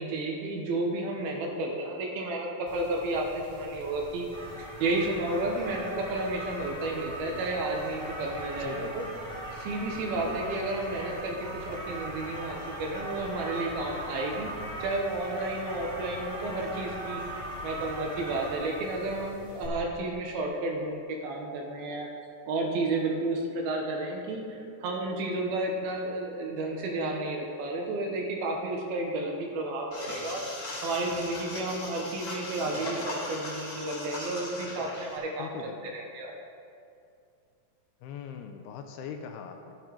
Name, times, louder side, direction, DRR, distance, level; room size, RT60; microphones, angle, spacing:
voice 1, 0.0-4.3 4.6-9.1 9.6-14.5 14.8-22.1 22.5-30.4 30.8-36.3, right 2 dB, 70° right, 0 dB, 2.8 m, -32 dB
sound 1, 2.7-19.7, right 1 dB, ahead, 1.8 m, -40 dB
voice 2, 8.6-9.2 35.4-36.0 38.0-39.7, left 7 dB, 80° left, 5 dB, 2.5 m, -41 dB
sound 2, 29.9-35.2, left 2 dB, 25° left, 3.2 m, -38 dB
12.0 x 10.5 x 4.6 m, 2.4 s
omnidirectional pair, 4.9 m